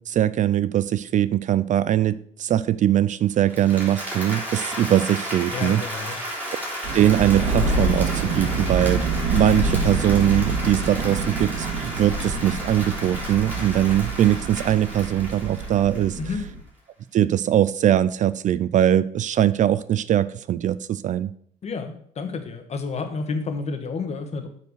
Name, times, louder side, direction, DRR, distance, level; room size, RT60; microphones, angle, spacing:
voice 1, 0.0-5.8 6.9-9.0 9.3-16.2 17.1-21.3, right 11 dB, 50° right, 17 dB, 0.4 m, -21 dB
Applause, 3.4-16.4, equal, 10° right, 3.8 m, -33 dB
voice 2, 5.5-6.2 16.2-16.5 21.6-24.5, left 4 dB, 40° left, 6 dB, 1.5 m, -30 dB
sound 1, 6.8-16.6, right 3 dB, 75° right, 1.9 m, -27 dB
8.2 x 4.7 x 6.4 m, 0.63 s
cardioid pair, 110°, 17 cm